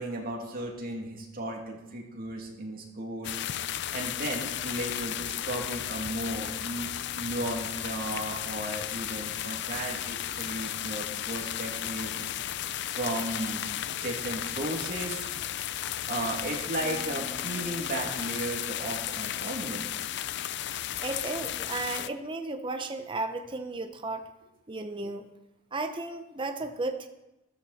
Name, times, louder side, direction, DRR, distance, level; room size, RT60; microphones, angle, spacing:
voice 1, 0.0-3.3 3.9-12.1 12.9-13.6 14.0-15.3 16.0-19.9, right 1 dB, 45° right, 0 dB, 2.7 m, -35 dB
sound 1, 3.2-22.1, left 11 dB, 60° left, 0.5 m, -34 dB
sound 2, 16.8-20.6, left 2 dB, 10° left, 2.4 m, -51 dB
voice 2, 20.7-24.2 24.7-25.3 25.7-27.1, right 2 dB, 25° right, 6 dB, 0.8 m, -34 dB
14.0 x 13.0 x 4.2 m, 0.95 s
head